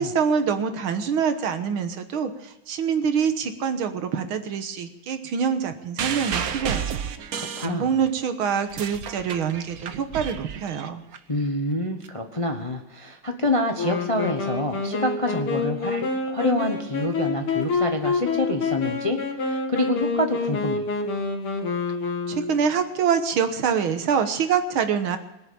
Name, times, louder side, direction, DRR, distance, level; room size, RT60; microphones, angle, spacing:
voice 1, 0.0-7.0 7.6-11.0 22.3-25.2, right 7 dB, 75° right, 8 dB, 2.0 m, -25 dB
sound 1, 6.0-8.2 8.6-11.2 12.0-12.1, right 7 dB, 55° right, 1.1 m, -31 dB
voice 2, 7.3-8.0 11.3-20.9, left 1 dB, 25° left, 4 dB, 0.8 m, -27 dB
Wind instrument woodwind instrument, 13.8-22.8, left 4 dB, 85° left, 2.5 m, -27 dB
21.5 x 7.1 x 8.7 m, 0.96 s
omnidirectional pair, 2.3 m